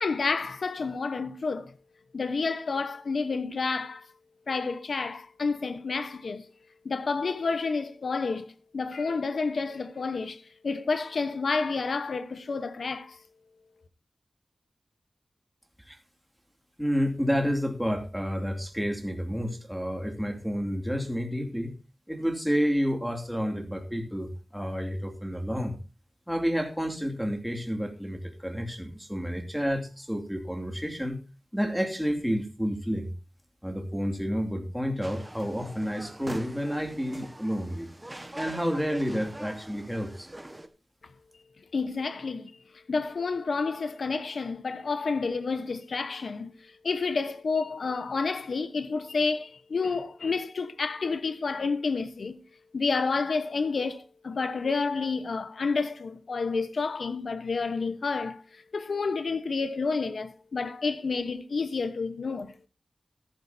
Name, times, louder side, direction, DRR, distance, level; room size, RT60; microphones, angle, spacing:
voice 1, 0.0-1.7 2.1-4.1 4.5-6.5 6.8-13.2 41.7-42.6 42.9-52.4 52.7-62.6, left 4 dB, 75° left, 1.0 m, -30 dB
voice 2, 16.8-21.7 22.1-25.7 26.3-31.2 31.5-33.1 33.6-37.9 38.3-40.3, equal, ahead, 2.6 m, -30 dB
sound 1, 35.0-40.7, right 1 dB, 15° right, 1.3 m, -43 dB
14.0 x 11.5 x 2.7 m
wide cardioid pair, 95°, 0 cm